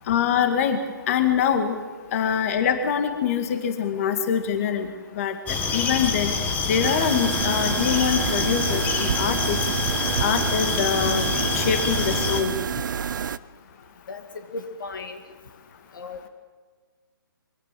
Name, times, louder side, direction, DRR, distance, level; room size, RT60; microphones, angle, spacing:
voice 1, 0.1-1.8 2.1-6.3 6.7-9.6 10.2-12.6, left 8 dB, 40° left, 8 dB, 2.1 m, -24 dB
sound 1, 5.5-12.4, left 4 dB, 15° left, 1.6 m, -26 dB
sound 2, 6.8-13.4, right 7 dB, 55° right, 0.7 m, -28 dB
voice 2, 14.5-15.2 16.0-16.3, left 3 dB, 60° left, 8 dB, 1.9 m, -35 dB
23.0 x 17.0 x 7.7 m, 1.4 s
hypercardioid pair, 150°, 12 cm